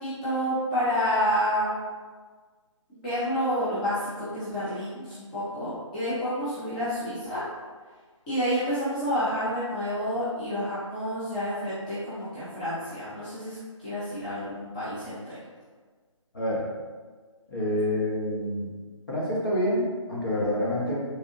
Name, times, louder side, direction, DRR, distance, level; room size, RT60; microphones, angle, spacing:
voice 1, 0.0-1.7 2.9-7.4 8.3-13.6 13.8-15.4, equal, 15° left, -13 dB, 0.6 m, -29 dB
voice 2, 16.3-16.7 17.5-18.7 19.1-21.0, left 1 dB, 45° left, -6 dB, 1.0 m, -27 dB
3.6 x 2.3 x 2.7 m, 1.5 s
figure-of-eight pair, 150°, 17 cm